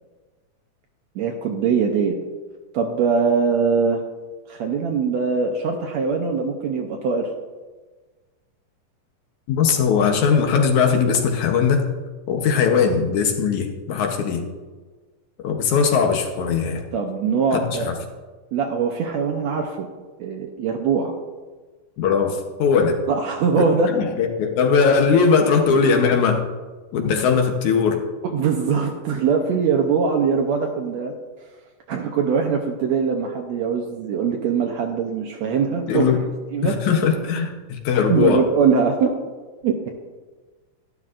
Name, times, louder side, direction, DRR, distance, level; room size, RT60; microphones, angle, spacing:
voice 1, 1.2-2.2 2.7-4.0 4.5-7.3 16.9-17.9 18.5-19.9 20.2-21.1 23.1-23.9 28.2-31.1 31.9-36.1 36.5-36.7 38.1-39.1 39.6-39.9, right 5 dB, 75° right, 2 dB, 1.7 m, -22 dB
voice 2, 9.5-11.9 12.3-14.4 15.4-16.8 17.5-17.9 22.0-23.0 23.6-26.4 26.9-28.0 35.9-36.2 36.6-38.4, left 6 dB, 70° left, 3 dB, 2.2 m, -19 dB
12.0 x 12.0 x 2.5 m, 1.3 s
omnidirectional pair, 3.8 m